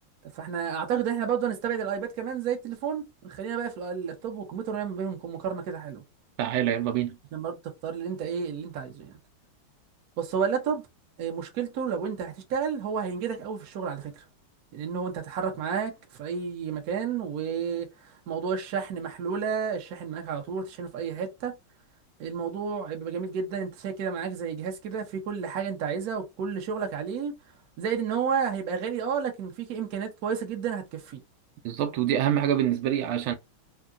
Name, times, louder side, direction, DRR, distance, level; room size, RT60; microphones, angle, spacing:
voice 1, 0.3-6.0 7.3-9.1 10.2-10.8 11.2-14.2 14.7-21.5 22.2-27.3 27.8-31.2, right 7 dB, 60° right, 1.1 m, -31 dB
voice 2, 6.4-7.2 31.6-33.3, right 10 dB, 80° right, 1.4 m, -25 dB
3.7 x 2.1 x 2.4 m
omnidirectional pair, 2.3 m